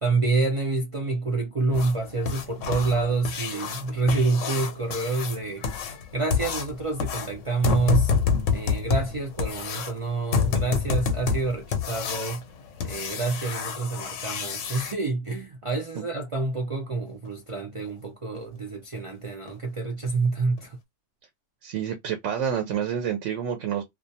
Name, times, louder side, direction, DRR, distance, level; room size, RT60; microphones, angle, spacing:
voice 1, 0.0-5.8 6.1-8.1 8.5-12.4 12.8-20.8, right 3 dB, 55° right, 0.3 m, -27 dB
sound 1, 1.7-14.9 17.2-17.3 17.8-17.9 18.3-18.4 18.9-19.0 19.5-19.6 20.0-20.1 20.6-20.7, left 6 dB, 80° left, 0.9 m, -28 dB
voice 2, 21.6-23.8, right 8 dB, 80° right, 1.0 m, -28 dB
2.3 x 2.2 x 2.6 m
omnidirectional pair, 1.3 m